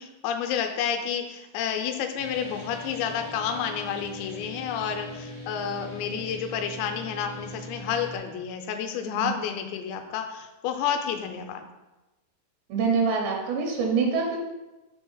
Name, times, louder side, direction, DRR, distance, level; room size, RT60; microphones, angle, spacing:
voice 1, 0.0-11.6, left 8 dB, 85° left, 5 dB, 2.9 m, -30 dB
sound 1, 2.2-8.2, left 1 dB, 55° right, 0.9 m, -40 dB
voice 2, 12.7-14.4, right 5 dB, 80° right, 1 dB, 3.0 m, -25 dB
7.0 x 2.8 x 5.5 m, 1.0 s
omnidirectional pair, 5.0 m